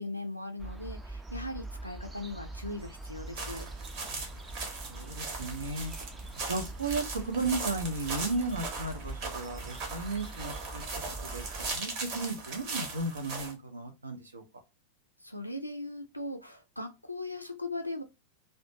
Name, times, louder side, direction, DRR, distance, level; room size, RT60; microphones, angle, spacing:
voice 1, 0.0-3.6 15.2-18.0, left 2 dB, 90° left, 0.4 m, -39 dB
sound 1, 0.6-11.8, right 2 dB, 10° right, 0.3 m, -43 dB
sound 2, 3.3-13.5, right 4 dB, 45° right, 0.8 m, -39 dB
voice 2, 4.9-5.9 6.5-10.9 11.2-11.4 11.7-14.4, right 3 dB, 75° right, 0.6 m, -34 dB
2.4 x 2.1 x 2.7 m
figure-of-eight pair, 90°, 0 cm